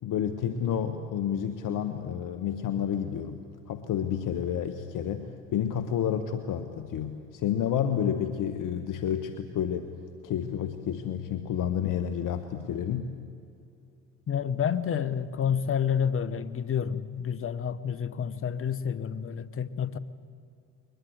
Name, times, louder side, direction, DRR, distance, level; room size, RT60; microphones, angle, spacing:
voice 1, 0.0-9.9 10.2-13.1, left 9 dB, 55° left, 9 dB, 1.4 m, -30 dB
voice 2, 14.3-20.0, left 8 dB, 35° left, 16 dB, 1.1 m, -29 dB
22.0 x 20.5 x 8.0 m, 2.4 s
hypercardioid pair, 70°, 38 cm